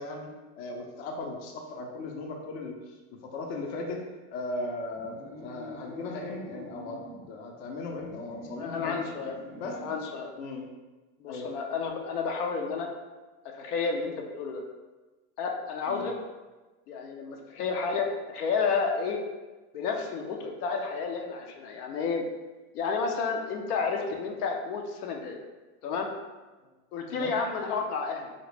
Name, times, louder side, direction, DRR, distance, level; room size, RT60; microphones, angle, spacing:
voice 1, 0.0-4.0 4.3-7.0 7.3-9.0 9.5-9.8 10.4-10.6 11.3-11.5 15.9-16.1 26.6-26.7 27.1-27.3, left 2 dB, 50° left, 1 dB, 0.6 m, -37 dB
sound 1, 4.9-7.3 7.8-10.1, right 1 dB, 20° right, 0.5 m, -46 dB
voice 2, 8.6-9.4 9.7-10.3 11.2-12.9 13.5-14.6 15.4-16.1 16.9-19.2 19.7-22.2 22.7-25.4 25.8-26.1 26.9-28.3, left 5 dB, 85° left, 2 dB, 0.7 m, -31 dB
3.9 x 2.1 x 3.2 m, 1.2 s
supercardioid pair, 135°, 45 cm